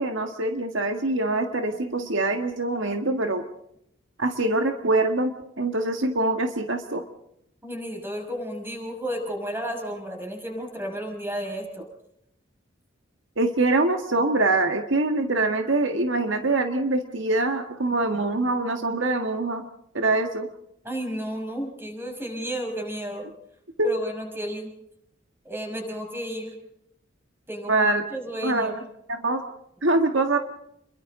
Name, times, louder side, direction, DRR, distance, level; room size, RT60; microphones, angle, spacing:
voice 1, 0.0-3.4 4.2-7.0 13.4-19.6 19.9-20.5 23.8-23.9 27.7-28.0 28.4-28.8 29.1-29.4 29.8-30.4, right 2 dB, 70° right, 5 dB, 1.8 m, -24 dB
voice 2, 7.6-11.9 20.8-23.2 23.8-24.7 25.4-26.5 27.5-27.8 28.1-28.8, equal, 10° right, 2 dB, 6.1 m, -32 dB
29.5 x 22.5 x 3.9 m, 0.76 s
head